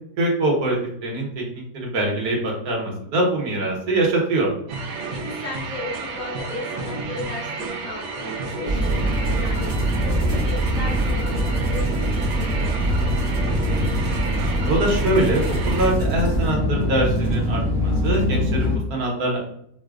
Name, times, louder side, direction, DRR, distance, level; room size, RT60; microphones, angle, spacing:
voice 1, 0.2-4.5 13.7-14.0 14.5-19.4, right 1 dB, 65° right, -2 dB, 1.3 m, -23 dB
sound 1, 4.7-15.9, right 3 dB, 85° right, 1.3 m, -31 dB
voice 2, 5.2-9.7 10.1-12.1 12.3-12.9, left 2 dB, 60° left, -5 dB, 0.9 m, -35 dB
sound 2, 8.7-18.8, equal, 30° right, 0.5 m, -23 dB
4.8 x 2.1 x 2.4 m, 0.71 s
omnidirectional pair, 1.8 m